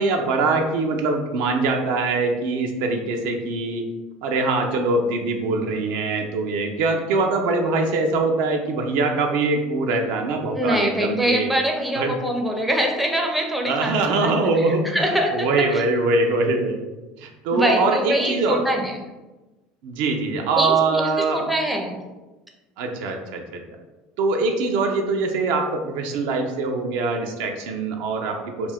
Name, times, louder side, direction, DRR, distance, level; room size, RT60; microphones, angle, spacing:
voice 1, 0.0-3.8 4.2-11.5 12.0-12.1 13.6-16.8 17.2-18.7 19.8-21.4 22.8-23.6 24.2-28.7, right 3 dB, 75° right, 3 dB, 0.4 m, -23 dB
voice 2, 10.5-14.3 14.7-15.8 17.5-18.9 20.6-22.0, equal, ahead, 1 dB, 0.5 m, -24 dB
2.4 x 2.2 x 3.4 m, 1.1 s
supercardioid pair, 100°, 3 cm